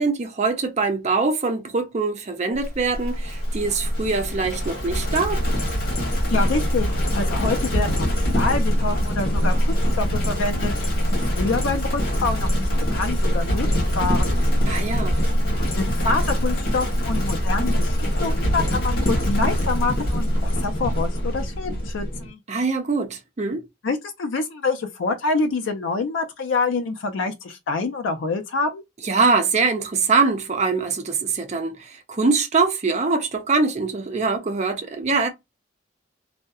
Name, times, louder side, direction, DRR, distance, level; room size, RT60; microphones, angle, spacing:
voice 1, 0.0-5.4 14.7-15.2 22.5-23.6 29.0-35.3, right 4 dB, 35° right, 0.5 m, -23 dB
Livestock farm animals working animals, 2.6-22.3, equal, 50° left, 1.1 m, -23 dB
voice 2, 6.3-13.7 13.9-14.4 15.7-22.4 23.8-28.8, left 3 dB, 85° left, 0.4 m, -26 dB
2.6 x 2.0 x 2.3 m
head